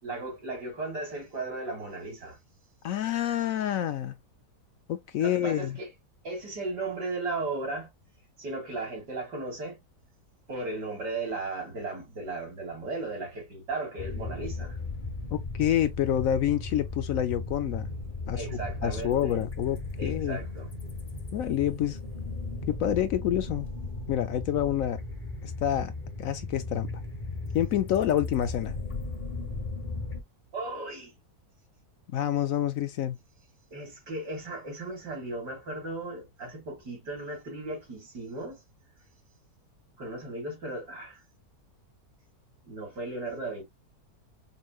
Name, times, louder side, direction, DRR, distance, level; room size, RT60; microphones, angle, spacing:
voice 1, 0.0-2.4 5.2-5.9 6.2-7.9 8.4-9.8 10.5-14.8 18.3-19.4 20.0-20.7 30.5-31.1 33.7-38.6 40.0-41.2 42.6-43.6, right 2 dB, 85° right, 3.2 m, -36 dB
voice 2, 2.8-4.2 4.9-5.8 15.3-17.9 18.3-20.4 21.3-22.0 22.7-23.7 24.1-25.0 25.4-25.9 26.2-26.9 27.5-28.7 32.1-33.2, left 11 dB, 70° left, 0.9 m, -28 dB
sound 1, 14.0-30.2, left 3 dB, 30° left, 1.4 m, -36 dB
5.6 x 3.0 x 2.3 m
omnidirectional pair, 1.7 m